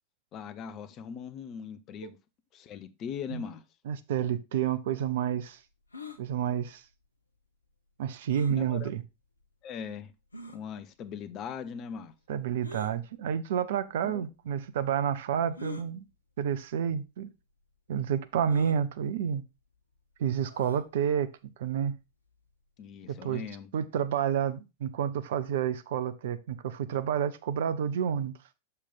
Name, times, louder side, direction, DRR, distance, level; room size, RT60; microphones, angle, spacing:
voice 1, 0.3-2.2 2.5-3.6 8.5-8.9 9.6-10.1 10.5-12.1 14.0-14.3 22.8-23.7, left 7 dB, 35° left, 0.7 m, -40 dB
voice 2, 3.9-5.6 6.2-6.8 8.0-9.0 12.3-16.0 16.4-17.3 17.9-19.4 20.2-21.3 21.6-22.0 23.1-23.4 23.7-28.3, right 8 dB, 55° right, 0.6 m, -29 dB
sound 1, 5.9-6.2 8.3-8.6 9.4-9.5 10.3-10.6 12.6-12.9 14.0-14.1 15.5-15.9 16.8-16.9 17.2-17.3 18.5-18.8 20.5-20.9, left 4 dB, 80° left, 0.8 m, -43 dB
6.5 x 5.5 x 3.9 m
figure-of-eight pair, 90°, 0 cm